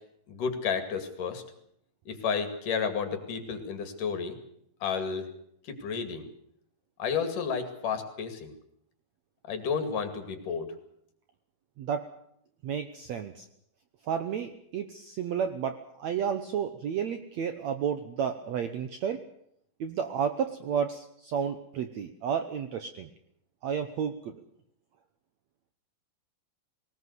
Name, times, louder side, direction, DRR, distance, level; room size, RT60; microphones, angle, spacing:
voice 1, 0.3-1.4 2.1-4.4 4.8-5.3 5.6-6.3 7.0-8.5 9.5-10.7, left 6 dB, 60° left, 8 dB, 3.7 m, -31 dB
voice 2, 11.8-12.1 12.6-13.5 14.1-19.2 19.8-23.1 23.6-24.4, right 7 dB, 70° right, 8 dB, 1.8 m, -32 dB
20.5 x 19.0 x 8.1 m, 0.71 s
omnidirectional pair, 4.4 m